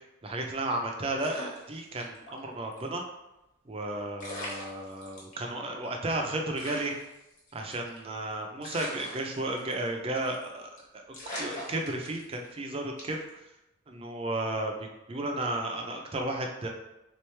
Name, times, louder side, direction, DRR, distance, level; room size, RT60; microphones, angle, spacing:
voice 1, 0.2-3.0 3.7-6.9 7.5-11.0 11.4-13.4 13.9-16.7, right 2 dB, 30° right, 2 dB, 0.4 m, -33 dB
sound 1, 1.2-2.4 2.7-2.8 3.8-3.9 4.2-5.3 5.8-5.9 6.1-6.2 6.6-8.1 8.6-9.9 10.2-10.5 10.8-10.9 11.1-12.5 13.0-13.3, equal, 40° left, 1.1 m, -41 dB
3.7 x 3.1 x 3.2 m, 0.92 s
head